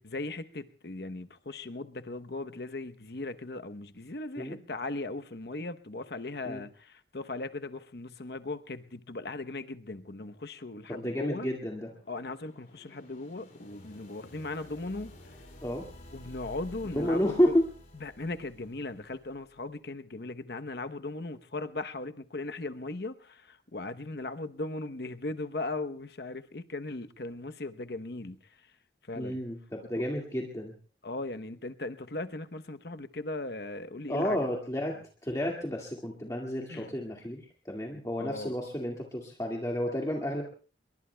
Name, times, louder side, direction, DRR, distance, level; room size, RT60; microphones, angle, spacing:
voice 1, 0.0-11.5 12.1-15.1 16.1-17.5 17.9-28.7 29.0-29.4 29.9-30.0 31.0-34.4 36.7-36.9 38.2-38.5, left 2 dB, 60° left, 10 dB, 0.9 m, -38 dB
sound 1, 10.8-19.7, left 1 dB, 45° left, 5.5 m, -52 dB
voice 2, 10.9-11.9 15.6-15.9 16.9-17.7 29.1-30.7 34.1-35.0 35.2-40.4, equal, 20° left, -1 dB, 2.0 m, -31 dB
28.0 x 22.5 x 2.3 m, 0.39 s
head